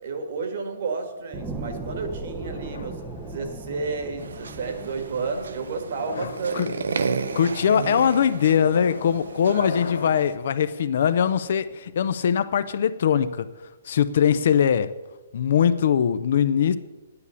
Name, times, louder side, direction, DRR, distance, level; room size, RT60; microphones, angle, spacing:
voice 1, 0.0-7.0 9.5-9.7 10.0-10.2, right 4 dB, 40° right, 7 dB, 1.6 m, -32 dB
sound 1, 1.3-12.3 12.8-12.9, right 2 dB, 5° right, 0.6 m, -40 dB
sound 2, 2.4-3.9 4.6-5.0 5.8-6.5 7.2-7.5 8.5-10.3, left 6 dB, 70° left, 0.8 m, -39 dB
sound 3, 4.2-10.4, right 5 dB, 85° right, 0.8 m, -33 dB
voice 2, 6.5-6.8 7.4-13.5 13.9-14.9 15.3-16.8, left 8 dB, 45° left, 13 dB, 0.5 m, -21 dB
9.7 x 9.7 x 6.9 m, 1.1 s
hypercardioid pair, 180°, 0 cm